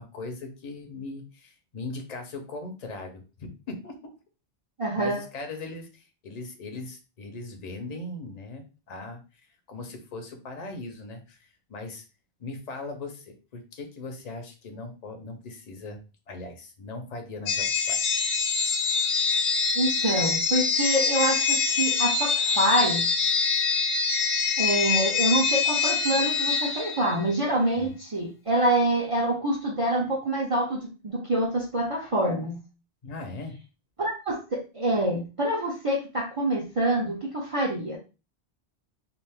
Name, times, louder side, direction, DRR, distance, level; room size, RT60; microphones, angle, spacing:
voice 1, 0.0-4.1 4.9-9.2 9.7-12.0 12.4-16.0 16.3-18.0 27.8-27.9 33.0-33.6, left 2 dB, 45° left, 5 dB, 0.6 m, -39 dB
voice 2, 4.8-5.2 19.7-23.1 24.6-32.6 34.0-38.0, right 1 dB, 40° right, -2 dB, 0.5 m, -26 dB
sound 1, 17.5-27.3, left 5 dB, 80° left, 0.9 m, -25 dB
2.5 x 2.4 x 3.4 m, 0.31 s
omnidirectional pair, 1.2 m